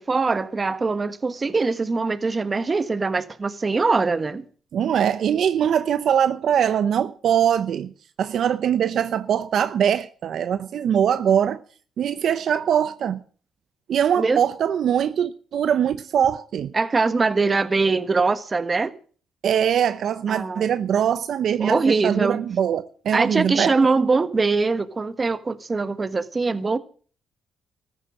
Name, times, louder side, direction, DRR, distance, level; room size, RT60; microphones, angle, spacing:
voice 1, 0.0-4.5 14.2-14.4 16.7-18.9 20.3-20.7 21.6-22.4 23.1-26.8, right 4 dB, 30° right, 1.4 m, -22 dB
voice 2, 4.7-7.9 8.2-11.6 12.0-13.2 13.9-16.7 19.4-23.7, right 9 dB, 65° right, 0.8 m, -22 dB
14.5 x 11.0 x 7.5 m
cardioid pair, 90°, 0 cm